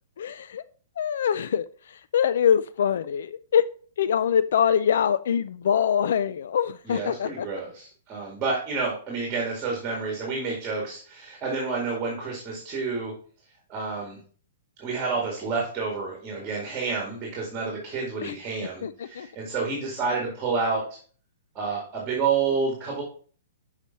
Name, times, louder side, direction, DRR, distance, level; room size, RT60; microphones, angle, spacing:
voice 1, 0.2-0.6 1.0-1.7 2.1-3.6 4.0-7.5 18.2-18.3 18.8-19.3, left 8 dB, 70° left, 15 dB, 0.3 m, -24 dB
voice 2, 6.8-13.1 13.7-14.2 14.8-20.8 21.6-23.0, right 4 dB, 20° right, -1 dB, 2.1 m, -29 dB
6.7 x 4.9 x 4.1 m, 0.42 s
hypercardioid pair, 160°, 0 cm